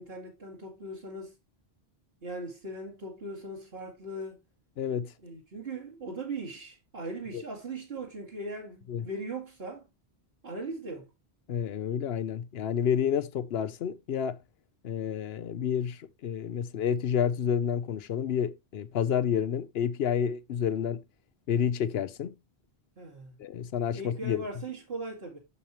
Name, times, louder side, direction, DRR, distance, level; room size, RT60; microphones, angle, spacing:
voice 1, 0.0-1.3 2.2-4.4 5.2-9.9 10.4-11.1 23.0-23.3 23.9-25.4, right 2 dB, 65° right, 2.2 m, -39 dB
voice 2, 4.8-5.1 7.3-7.4 8.9-9.0 11.5-14.4 14.8-21.0 21.5-22.3 23.4-24.4, left 8 dB, 70° left, 0.9 m, -29 dB
8.3 x 7.1 x 3.0 m
omnidirectional pair, 1.1 m